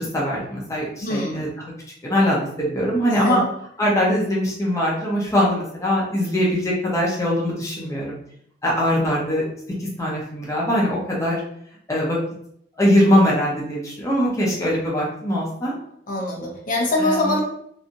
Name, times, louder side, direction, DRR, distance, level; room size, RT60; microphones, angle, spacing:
voice 1, 0.0-1.6 2.0-3.4 3.8-8.1 8.6-9.5 9.8-11.4 11.9-12.2 12.8-15.7 17.0-17.4, equal, 15° left, -4 dB, 0.8 m, -22 dB
voice 2, 1.0-1.5 3.1-3.4 16.1-17.4, left 1 dB, 50° left, -2 dB, 0.9 m, -23 dB
3.2 x 2.6 x 2.6 m, 0.67 s
head